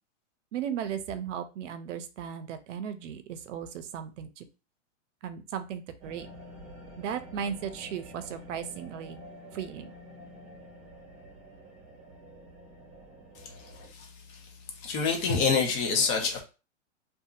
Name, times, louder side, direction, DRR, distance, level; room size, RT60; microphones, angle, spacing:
voice 1, 0.5-4.4 5.2-6.3 7.0-9.2 9.5-9.9, right 8 dB, 75° right, 0.6 m, -36 dB
sound 1, 6.0-13.9, equal, 25° right, 0.9 m, -48 dB
voice 2, 14.8-16.4, left 5 dB, 35° left, 0.8 m, -26 dB
2.7 x 2.5 x 2.4 m
hypercardioid pair, 135°, 37 cm